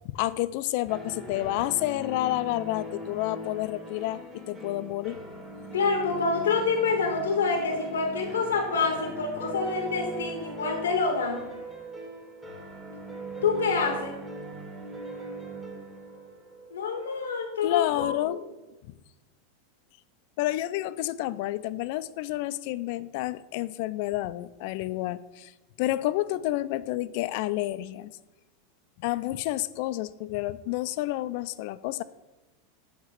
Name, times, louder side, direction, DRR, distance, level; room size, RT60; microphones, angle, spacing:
voice 1, 0.1-5.2 17.6-18.4 20.4-25.5 25.8-28.1 29.0-32.0, left 16 dB, 60° left, 15 dB, 0.3 m, -29 dB
sound 1, 0.9-17.6, right 1 dB, 20° right, 1.7 m, -40 dB
voice 2, 5.7-11.5 13.4-14.2 16.7-18.4, left 4 dB, 90° left, 4 dB, 0.8 m, -27 dB
7.8 x 3.0 x 6.0 m, 1.1 s
hypercardioid pair, 110°, 0 cm